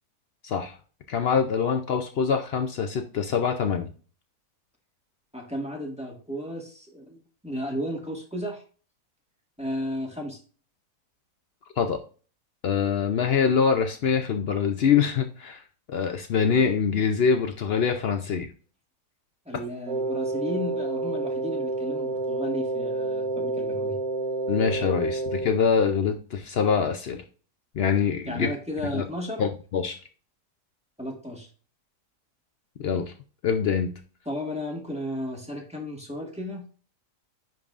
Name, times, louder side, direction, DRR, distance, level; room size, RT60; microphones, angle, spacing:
voice 1, 0.4-0.8 1.1-3.9 11.8-12.0 12.6-15.6 15.9-18.5 24.5-27.2 27.7-28.5 28.9-29.0 29.4-30.0 32.8-33.1 33.4-33.9, left 6 dB, 85° left, 6 dB, 0.5 m, -24 dB
voice 2, 5.3-8.6 9.6-10.4 19.4-24.0 28.2-29.4 31.0-31.5 34.2-36.6, equal, 5° right, -1 dB, 1.4 m, -34 dB
Wind instrument woodwind instrument, 19.9-25.6, right 2 dB, 75° right, 1.8 m, -29 dB
10.0 x 3.9 x 2.4 m, 0.38 s
omnidirectional pair, 1.8 m